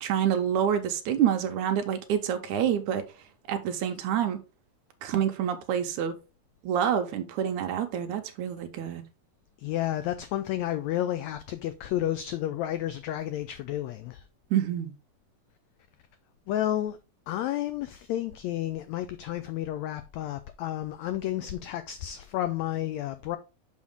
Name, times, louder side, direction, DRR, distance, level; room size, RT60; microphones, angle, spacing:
voice 1, 0.0-3.0 3.5-4.4 5.0-6.2 6.6-9.0 14.5-14.9, right 9 dB, 80° right, 2.0 m, -27 dB
voice 2, 9.6-14.2 16.5-17.0 17.3-23.4, left 12 dB, 85° left, 1.5 m, -31 dB
6.3 x 5.7 x 3.6 m
omnidirectional pair, 3.7 m